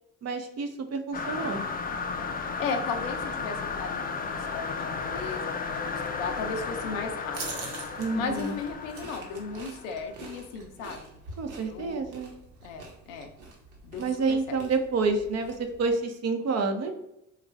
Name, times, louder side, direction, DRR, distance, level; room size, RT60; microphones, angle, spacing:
voice 1, 0.2-1.6 8.0-8.5 11.4-12.3 14.0-16.9, right 4 dB, 40° right, 5 dB, 0.7 m, -29 dB
sound 1, 1.1-10.1, left 4 dB, 25° left, 0.4 m, -34 dB
voice 2, 2.4-7.6 8.1-11.2 11.6-12.1 12.6-13.3 13.8-14.6, left 5 dB, 80° left, 5 dB, 0.6 m, -36 dB
sound 2, 7.3-16.0, right 3 dB, 70° right, 1.0 m, -44 dB
3.4 x 2.4 x 3.3 m, 0.83 s
hypercardioid pair, 55°, 38 cm